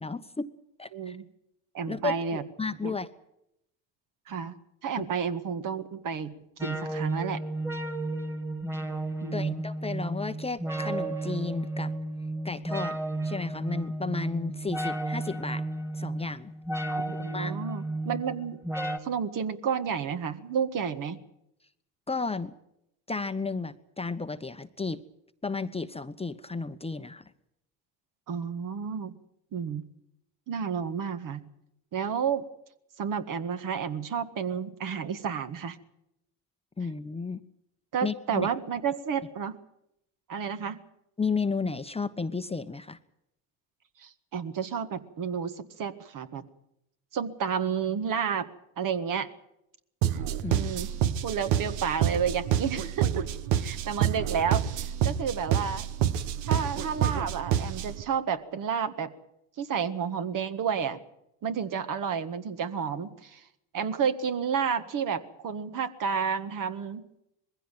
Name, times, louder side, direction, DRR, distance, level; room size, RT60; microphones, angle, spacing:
voice 1, 0.0-0.5 0.8-1.2 1.9-3.1 5.0-5.1 9.3-11.9 12.4-15.7 15.9-16.5 17.3-17.6 22.1-22.5 23.1-25.0 25.4-27.2 36.8-37.4 38.0-38.5 41.2-43.0 50.4-50.7, left 4 dB, 15° left, 10 dB, 0.9 m, -33 dB
voice 2, 0.9-1.3 1.7-2.4 2.8-2.9 4.3-4.5 4.8-7.4 9.2-9.6 16.9-18.6 19.0-21.2 28.3-29.2 29.5-29.9 30.5-31.4 31.9-32.4 33.0-35.8 37.9-39.6 40.3-40.8 44.0-46.4 47.1-48.5 48.8-49.3 50.5-50.9 51.2-53.3 53.6-55.9 56.5-59.1 59.6-61.0 61.4-63.4 63.7-67.0, right 7 dB, 50° right, 9 dB, 1.7 m, -31 dB
sound 1, 6.6-19.0, right 1 dB, 5° right, 2.2 m, -33 dB
sound 2, 50.0-58.0, right 10 dB, 75° right, 1.1 m, -28 dB
21.0 x 16.0 x 9.3 m, 0.82 s
supercardioid pair, 75°, 41 cm